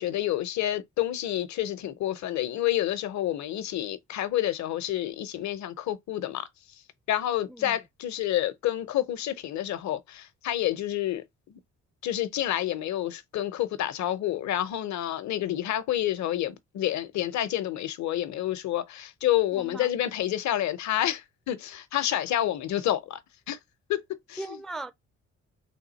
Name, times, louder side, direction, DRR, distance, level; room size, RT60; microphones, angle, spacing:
voice 1, 0.0-6.5 7.1-11.6 12.0-23.2 23.5-23.6 23.9-24.0 24.3-24.6, left 13 dB, 65° left, 0.7 m, -29 dB
voice 2, 7.5-7.8 19.5-19.9 24.4-24.9, right 2 dB, ahead, 0.3 m, -38 dB
3.6 x 2.7 x 4.0 m
cardioid pair, 90°, 30 cm